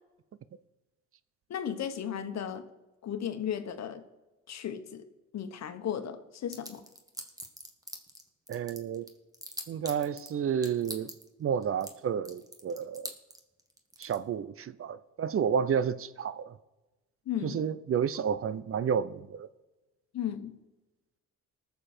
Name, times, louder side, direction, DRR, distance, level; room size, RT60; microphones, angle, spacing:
voice 1, 1.5-2.7 3.0-4.0 4.5-5.1 5.3-6.8 17.3-17.7 20.1-20.5, left 9 dB, 60° left, 1.2 m, -35 dB
sound 1, 6.5-8.2 8.5-10.3 10.6-11.3 11.6-11.9 12.2-14.2, right 1 dB, 10° right, 1.7 m, -41 dB
voice 2, 8.5-9.1 9.7-11.1 11.4-13.1 14.0-16.5 17.4-19.5, right 7 dB, 45° right, 0.6 m, -31 dB
19.0 x 7.0 x 4.4 m
cardioid pair, 90°, 30 cm